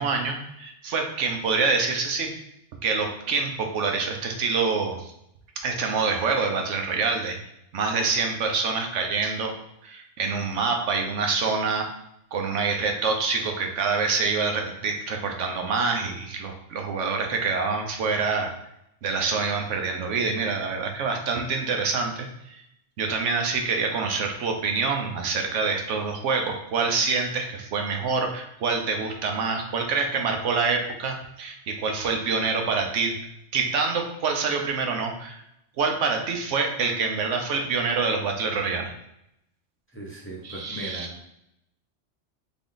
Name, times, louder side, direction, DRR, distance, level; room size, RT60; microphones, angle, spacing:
voice 1, 0.0-2.3 2.8-5.1 5.6-7.4 7.7-9.5 9.8-11.9 12.3-18.5 19.0-22.6 23.0-33.2 33.5-35.4 35.8-38.9 40.4-41.1, right 4 dB, 90° right, 3 dB, 1.1 m, -26 dB
voice 2, 39.9-41.3, right 1 dB, 10° left, -4 dB, 0.9 m, -38 dB
3.9 x 3.5 x 3.9 m, 0.80 s
omnidirectional pair, 1.2 m